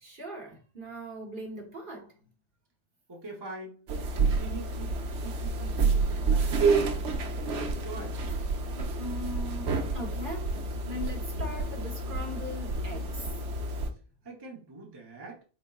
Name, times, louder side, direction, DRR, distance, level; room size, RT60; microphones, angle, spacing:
voice 1, 0.0-2.1 8.7-13.3, equal, 50° right, 1.2 m, -40 dB
voice 2, 3.1-4.9 5.2-7.1 7.4-8.2 14.2-15.4, right 3 dB, 25° right, 0.7 m, -44 dB
sound 1, 3.9-13.9, right 3 dB, 75° right, 1.0 m, -29 dB
4.2 x 4.0 x 2.3 m
omnidirectional pair, 1.2 m